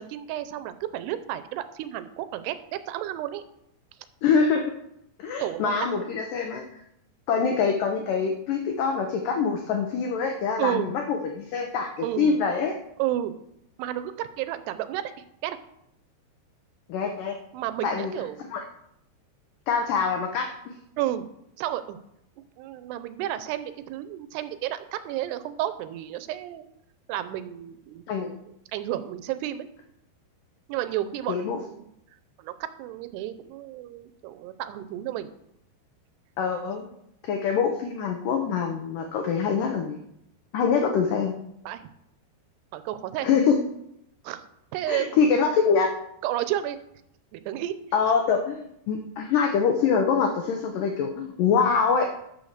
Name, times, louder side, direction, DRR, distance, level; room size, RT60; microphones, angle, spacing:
voice 1, 0.0-3.4 5.4-6.1 10.6-11.0 12.0-12.3 13.0-13.3 13.8-15.6 17.5-18.5 21.0-21.3 21.6-22.0 22.6-26.7 27.1-28.3 28.7-29.7 30.7-31.9 32.4-35.3 41.7-41.9 42.7-43.3 44.2-44.4 44.7-45.2 46.2-46.8 47.3-47.8, right 13 dB, 80° right, 12 dB, 2.6 m, -32 dB
voice 2, 4.2-4.6 5.2-6.6 7.3-12.8 16.9-17.4 17.8-18.1 18.5-18.6 19.7-20.7 28.1-28.3 31.3-31.6 36.4-36.9 37.2-40.0 40.5-41.4 43.2-43.6 44.9-45.9 47.9-52.1, left 6 dB, 85° left, 3 dB, 1.9 m, -24 dB
11.5 x 4.5 x 6.5 m, 0.78 s
omnidirectional pair, 5.0 m